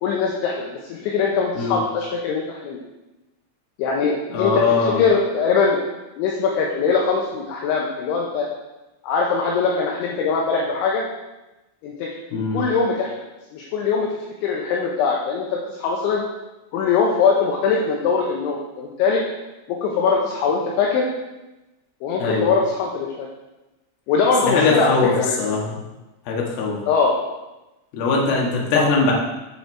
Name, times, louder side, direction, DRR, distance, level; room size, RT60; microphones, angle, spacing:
voice 1, 0.0-2.8 3.8-4.6 5.0-5.8 6.2-8.5 9.0-11.0 11.8-12.1 12.5-13.2 13.5-14.1 14.4-16.2 16.7-19.2 19.7-21.1 22.0-23.3 24.1-25.5 26.9-27.2 28.7-28.9, left 5 dB, 75° left, -2 dB, 3.0 m, -21 dB
voice 2, 4.3-5.0 12.3-12.6 22.2-22.5 24.4-25.1 25.4-25.7 26.3-26.8 27.9-29.1, left 4 dB, 60° left, -2 dB, 2.8 m, -21 dB
8.0 x 6.9 x 4.6 m, 1.0 s
omnidirectional pair, 6.0 m